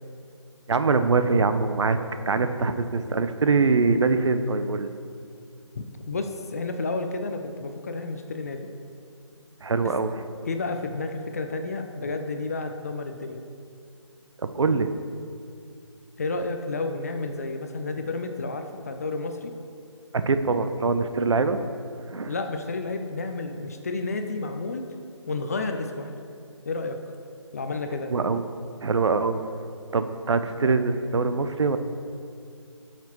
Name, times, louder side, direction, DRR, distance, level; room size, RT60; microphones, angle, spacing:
voice 1, 0.7-2.0 2.3-4.9 9.6-10.1 14.4-14.9 20.1-21.6 22.1-22.3 28.1-28.5 28.8-29.4 29.9-31.8, right 4 dB, 65° right, 10 dB, 0.6 m, -23 dB
voice 2, 6.1-8.7 9.8-9.9 10.5-13.4 16.2-19.5 22.3-24.8 25.3-26.1 26.6-27.0 27.5-28.1, left 3 dB, 30° left, 6 dB, 0.4 m, -31 dB
12.0 x 5.9 x 3.0 m, 2.4 s
figure-of-eight pair, 160°, 16 cm